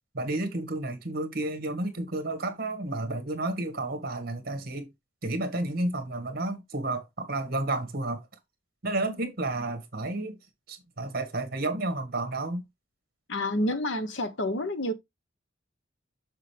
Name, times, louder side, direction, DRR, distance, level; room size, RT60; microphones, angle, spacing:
voice 1, 0.1-4.9 5.2-8.2 8.8-10.4 10.7-12.6, right 2 dB, 50° right, 1.8 m, -31 dB
voice 2, 13.3-14.9, left 1 dB, 70° left, 1.1 m, -28 dB
6.6 x 6.6 x 3.3 m
head